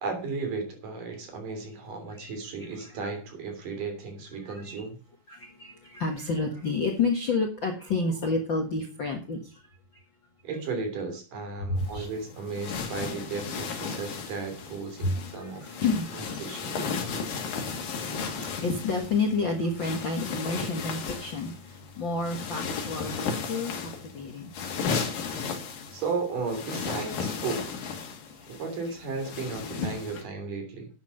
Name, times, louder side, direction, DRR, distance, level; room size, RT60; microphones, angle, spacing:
voice 1, 0.0-5.0 10.4-17.1 25.9-27.7 28.5-30.9, right 4 dB, 60° right, 5 dB, 4.6 m, -35 dB
voice 2, 4.4-4.8 5.3-9.5 11.7-12.1 15.0-16.4 16.7-23.8 24.0-24.5, left 3 dB, 50° left, 2 dB, 1.5 m, -30 dB
sound 1, 11.8-30.2, left 5 dB, 65° left, 3.7 m, -35 dB
11.0 x 8.7 x 5.7 m, 0.36 s
omnidirectional pair, 4.2 m